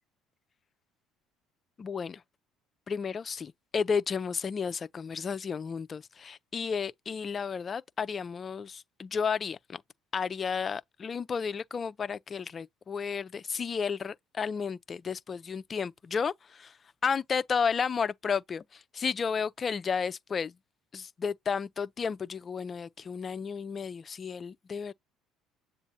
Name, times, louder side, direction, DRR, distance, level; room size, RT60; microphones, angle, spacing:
voice 1, 1.8-2.2 2.9-9.8 10.1-20.6 20.9-24.9, left 6 dB, 35° left, 0.5 m, -32 dB
7.2 x 2.5 x 2.8 m
supercardioid pair, 85°, 0 cm